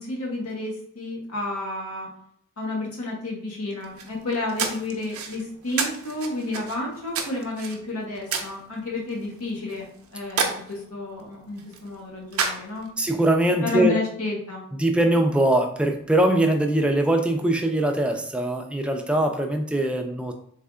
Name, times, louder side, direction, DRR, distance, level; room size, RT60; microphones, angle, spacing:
voice 1, 0.0-2.1 2.6-12.9 13.6-14.6, left 2 dB, 85° left, -2 dB, 1.0 m, -31 dB
sound 1, 3.8-13.1, right 5 dB, 75° right, 0.6 m, -33 dB
voice 2, 13.0-13.9 14.7-20.3, right 1 dB, 5° right, 3 dB, 0.3 m, -22 dB
3.5 x 3.3 x 2.4 m, 0.65 s
head